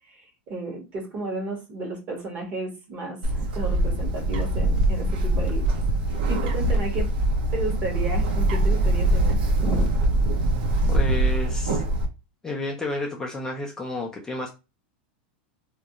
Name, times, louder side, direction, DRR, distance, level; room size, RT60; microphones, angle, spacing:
voice 1, 0.1-5.8 6.3-7.1 7.5-9.9, right 2 dB, 35° right, 1 dB, 1.0 m, -33 dB
Bird, 3.2-12.0, right 1 dB, 75° right, 0.8 m, -23 dB
voice 2, 10.9-11.8 12.4-14.5, left 2 dB, 10° left, 0 dB, 0.4 m, -31 dB
2.3 x 2.1 x 2.8 m, 0.27 s
supercardioid pair, 145°, 6 cm